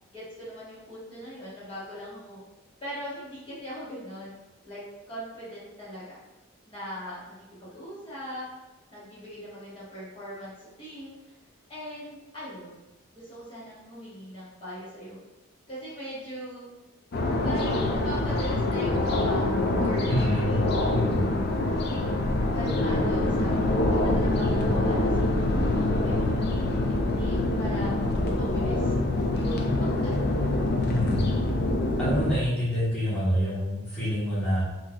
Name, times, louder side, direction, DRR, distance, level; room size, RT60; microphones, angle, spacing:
voice 1, 0.1-2.4 2.8-4.3 4.6-4.8 5.1-6.2 6.7-8.4 8.9-11.1 11.7-12.8 13.1-15.2 15.7-16.7 17.4-19.5 19.8-20.8 21.7-22.2 22.5-23.6 23.9-25.6 26.0-26.8 27.1-27.9 28.2-28.9 29.3-30.5, equal, 25° left, -10 dB, 1.3 m, -40 dB
sound 1, 17.1-32.4, left 2 dB, 50° left, 0.3 m, -25 dB
voice 2, 20.1-20.6 20.9-21.3 30.9-31.3 32.0-34.6, equal, 5° left, -12 dB, 1.2 m, -27 dB
3.8 x 2.6 x 2.4 m, 1.1 s
head